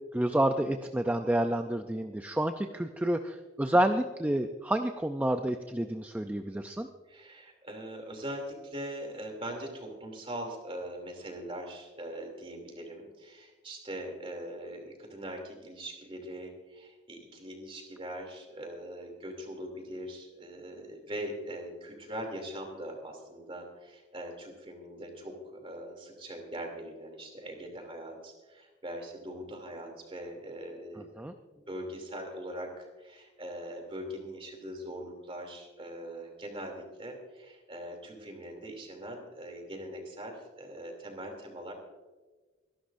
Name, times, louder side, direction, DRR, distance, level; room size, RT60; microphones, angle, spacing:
voice 1, 0.1-6.9 31.2-31.3, right 1 dB, 10° right, 6 dB, 0.4 m, -29 dB
voice 2, 7.1-31.1 31.7-41.7, right 1 dB, 30° right, 3 dB, 2.8 m, -41 dB
25.0 x 11.5 x 2.6 m, 1.3 s
head